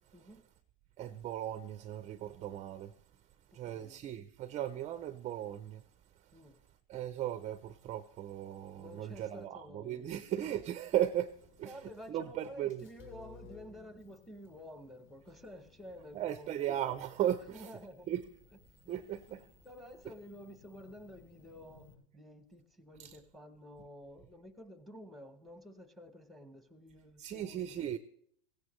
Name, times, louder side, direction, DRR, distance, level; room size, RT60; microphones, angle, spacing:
voice 1, 0.1-0.4 3.5-4.0 6.3-6.6 8.8-10.2 11.6-16.6 17.5-18.1 19.3-19.4 19.6-27.7, left 1 dB, ahead, 0.9 m, -51 dB
voice 2, 1.0-2.9 3.5-5.8 6.9-11.3 11.6-11.8 12.1-12.9 16.1-17.7 18.1-18.2 18.9-19.5 23.0-23.2 27.2-28.0, right 11 dB, 25° right, 0.5 m, -36 dB
sound 1, 11.3-21.9, left 4 dB, 40° left, 2.5 m, -60 dB
16.0 x 16.0 x 3.1 m
supercardioid pair, 135°, 29 cm